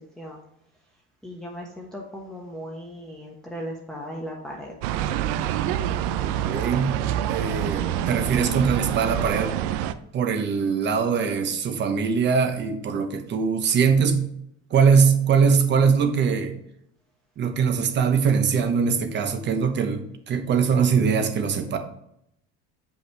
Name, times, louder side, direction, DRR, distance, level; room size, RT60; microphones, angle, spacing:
voice 1, 1.2-4.7, equal, ahead, -3 dB, 1.1 m, -37 dB
sound 1, 4.8-9.9, right 11 dB, 80° right, 0.6 m, -26 dB
voice 2, 6.4-7.0 7.3-9.5 10.1-14.3 14.7-16.5 17.4-21.8, right 6 dB, 35° right, 7 dB, 1.0 m, -22 dB
7.8 x 5.5 x 3.4 m, 0.76 s
cardioid pair, 140°, 30 cm